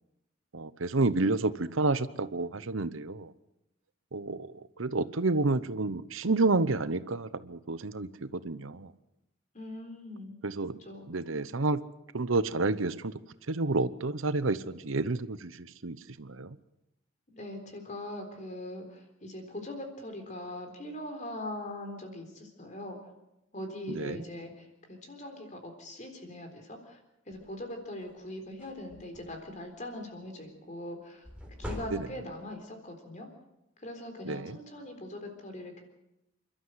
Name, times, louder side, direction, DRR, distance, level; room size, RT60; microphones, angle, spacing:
voice 1, 0.5-3.3 4.1-4.5 4.8-8.9 10.4-10.8 11.1-11.8 12.1-13.1 13.5-16.5 23.9-24.2 34.2-34.6, right 3 dB, 85° right, 15 dB, 0.9 m, -30 dB
voice 2, 9.5-10.4 10.8-11.1 17.3-23.0 23.5-27.0 27.3-31.2 31.6-33.3 33.8-35.8, left 1 dB, 40° left, 5 dB, 3.9 m, -41 dB
sound 1, 27.3-27.6 28.0-28.2 28.5-29.6 31.2-32.5, equal, 5° right, 3.8 m, -42 dB
28.0 x 12.5 x 8.0 m, 0.90 s
head